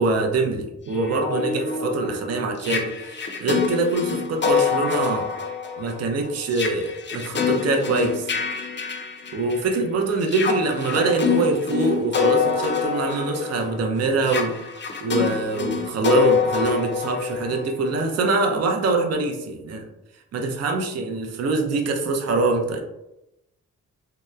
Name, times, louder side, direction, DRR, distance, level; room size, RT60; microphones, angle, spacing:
voice 1, 0.0-5.3 5.8-8.3 9.3-14.5 15.0-19.8 20.3-22.8, right 3 dB, 50° right, 3 dB, 0.5 m, -24 dB
sound 1, 0.9-9.8 10.2-18.0, left 6 dB, 35° left, 0.5 m, -26 dB
2.7 x 2.0 x 2.2 m, 0.89 s
cardioid pair, 85°, 32 cm